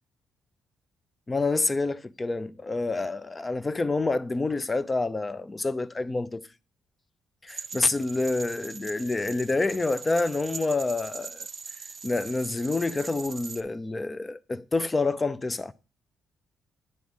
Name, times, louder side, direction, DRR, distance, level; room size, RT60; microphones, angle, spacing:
voice 1, 1.3-6.4 7.4-11.5 12.0-15.7, left 3 dB, 25° left, 0.5 m, -28 dB
sound 1, 7.5-13.6, right 5 dB, 35° right, 0.5 m, -41 dB
9.4 x 4.0 x 4.8 m
cardioid pair, 90°, 0 cm